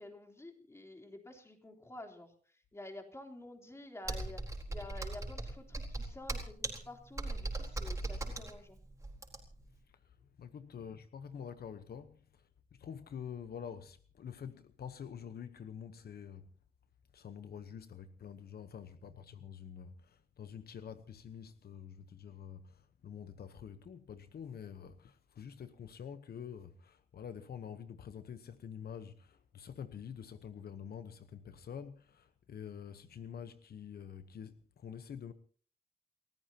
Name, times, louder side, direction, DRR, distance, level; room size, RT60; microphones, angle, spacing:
voice 1, 0.0-8.8, left 1 dB, 15° left, 3.4 m, -50 dB
Computer keyboard, 4.1-9.7, right 2 dB, 20° right, 4.2 m, -39 dB
voice 2, 10.4-12.5 12.8-16.5 17.1-35.3, left 7 dB, 75° left, 1.1 m, -47 dB
29.5 x 14.5 x 2.9 m
wide cardioid pair, 120°, 16 cm